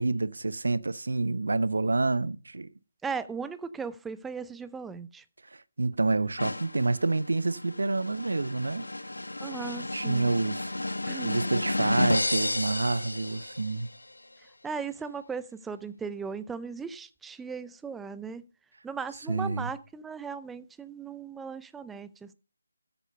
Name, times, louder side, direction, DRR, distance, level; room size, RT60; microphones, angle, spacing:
voice 1, 0.0-2.7 5.8-8.9 9.9-10.7 11.2-13.9 19.3-19.7, right 3 dB, 70° right, 0.9 m, -28 dB
voice 2, 3.0-5.2 9.4-10.3 11.1-11.4 14.6-18.5 18.8-22.3, right 5 dB, 5° right, 0.6 m, -37 dB
sound 1, 6.4-14.0, left 2 dB, 85° left, 1.1 m, -32 dB
13.5 x 8.1 x 5.4 m
figure-of-eight pair, 155°, 0 cm